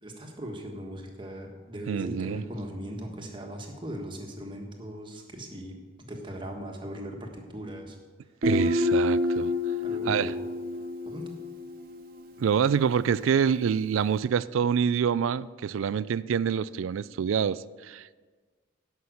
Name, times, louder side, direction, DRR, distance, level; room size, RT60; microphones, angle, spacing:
voice 1, 0.0-5.8 6.1-8.0 9.8-10.5 11.0-11.3, equal, 25° right, 2 dB, 1.4 m, -39 dB
voice 2, 1.9-2.4 8.4-9.5 10.1-10.3 12.4-18.2, right 7 dB, 75° right, 19 dB, 0.3 m, -26 dB
Guitar, 8.4-12.1, left 2 dB, 45° right, 0.9 m, -28 dB
11.0 x 5.9 x 7.9 m, 1.4 s
head